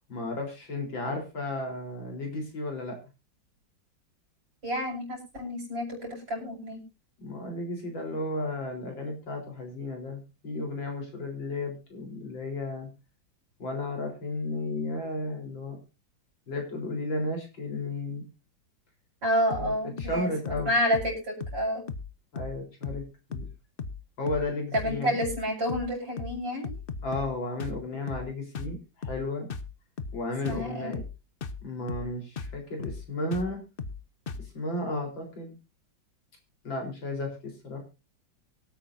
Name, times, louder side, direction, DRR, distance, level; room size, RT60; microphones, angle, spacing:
voice 1, 0.1-3.0 7.2-12.9 13.6-15.8 16.5-18.2 19.5-20.7 22.3-23.0 23.3-23.5 24.2-25.2 27.0-29.5 30.1-31.0 31.6-33.6 34.5-35.6 36.6-37.8, left 2 dB, 75° left, 2 dB, 4.7 m, -33 dB
voice 2, 4.6-6.8 19.2-21.8 24.7-26.7 30.4-30.9, equal, 70° right, -3 dB, 6.1 m, -29 dB
sound 1, 19.5-19.7 20.0-20.2 20.5-20.7 20.9-21.2 21.4-21.6 21.9-22.1 22.4-22.6 22.8-23.1 23.3-23.5 23.8-24.0 24.3-24.5 24.7-25.0 25.2-25.4 25.7-25.9 26.2-26.4 26.6-27.3 27.6-27.8 28.1-28.3 28.6-28.8 29.0-29.2 29.5-29.7 30.0-30.2 30.5-30.7 30.9-31.2 31.4-31.6 31.9-32.1 32.4-32.6 32.8-33.1 33.3-33.5 33.8-34.0 34.3-34.5, left 4 dB, 45° left, 0.7 m, -37 dB
23.5 x 8.7 x 2.6 m, 0.27 s
omnidirectional pair, 2.1 m